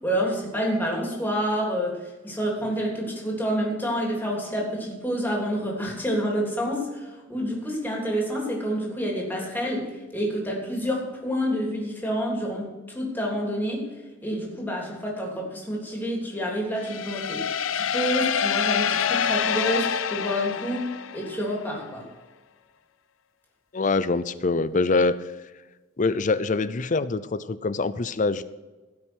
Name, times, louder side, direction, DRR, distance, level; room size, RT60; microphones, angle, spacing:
voice 1, 0.0-2.0 2.2-13.9 14.2-17.5 17.7-22.0, equal, 10° left, -2 dB, 3.2 m, -28 dB
hi string fx, 16.8-21.5, left 7 dB, 90° left, 0.6 m, -26 dB
voice 2, 23.7-25.2 26.0-28.4, left 3 dB, 40° left, 15 dB, 0.5 m, -24 dB
16.5 x 6.1 x 6.2 m, 1.2 s
head